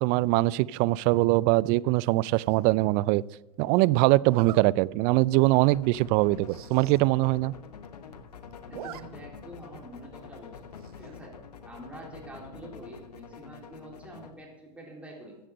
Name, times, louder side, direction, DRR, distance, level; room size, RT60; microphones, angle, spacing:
voice 1, 0.0-3.2 3.6-7.5, right 20 dB, 45° right, 22 dB, 0.4 m, -22 dB
Zipper (clothing), 2.3-2.7 4.2-4.6 5.2-5.4 5.7-5.8 6.0-6.1 6.4-7.0 7.4-7.5 7.6-8.2 8.5-9.0 9.4-9.5 10.8-11.2, right 12 dB, 70° right, 0.8 m, -44 dB
sound 1, 5.3-14.3, left 6 dB, 90° left, 1.1 m, -46 dB
voice 2, 8.6-10.7 11.0-11.4 11.7-15.4, right 1 dB, 5° right, -1 dB, 3.7 m, -46 dB
14.0 x 8.5 x 5.2 m, 1.0 s
hypercardioid pair, 105°, 20 cm